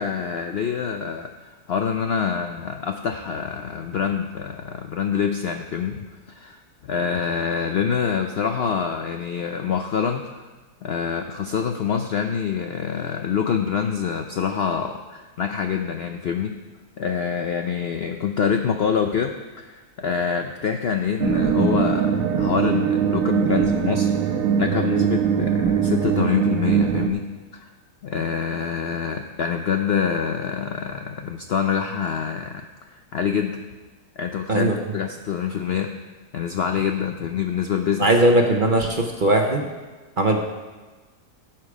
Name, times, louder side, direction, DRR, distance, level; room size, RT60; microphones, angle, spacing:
voice 1, 0.0-10.4 10.8-16.6 17.0-27.6 28.0-33.6 34.2-35.9 36.3-38.1, left 7 dB, 85° left, 5 dB, 0.5 m, -26 dB
sound 1, 21.2-27.1, right 8 dB, 65° right, 1.1 m, -21 dB
voice 2, 38.0-39.7 40.2-40.4, right 1 dB, 45° right, 3 dB, 0.7 m, -19 dB
16.5 x 6.0 x 4.9 m, 1.3 s
omnidirectional pair, 1.8 m